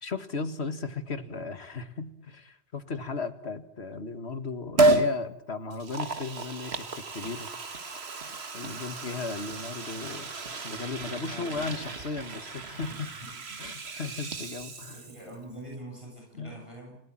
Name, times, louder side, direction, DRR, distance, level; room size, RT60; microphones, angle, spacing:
voice 1, 0.0-7.5 8.5-10.3 10.6-13.1 13.6-15.1 16.4-16.6, left 4 dB, 85° left, 10 dB, 2.1 m, -36 dB
Liquid, 4.8-5.1 5.7-15.3 15.7-15.8, right 2 dB, 75° right, 1.9 m, -31 dB
voice 2, 11.3-11.7 12.7-13.3 14.9-17.0, right 1 dB, 30° right, -1 dB, 7.8 m, -44 dB
29.5 x 18.5 x 7.6 m, 0.75 s
omnidirectional pair, 1.1 m